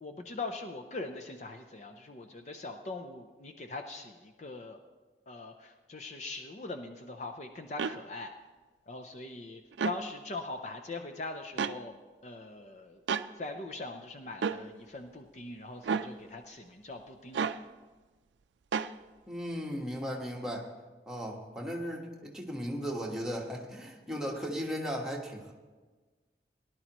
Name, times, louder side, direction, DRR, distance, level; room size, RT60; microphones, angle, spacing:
voice 1, 0.0-4.8 5.3-8.3 8.9-11.9 12.2-13.0 13.4-17.5, left 3 dB, 40° left, 5 dB, 0.6 m, -41 dB
sound 1, 7.8-8.0 9.7-10.0 11.6-11.8 13.1-13.3 14.4-14.6 15.8-16.1 17.3-17.6 18.7-18.9, right 6 dB, 85° right, 0.4 m, -31 dB
voice 2, 19.3-20.7 21.1-25.5, equal, 5° right, -2 dB, 1.3 m, -36 dB
18.5 x 11.0 x 3.0 m, 1.3 s
head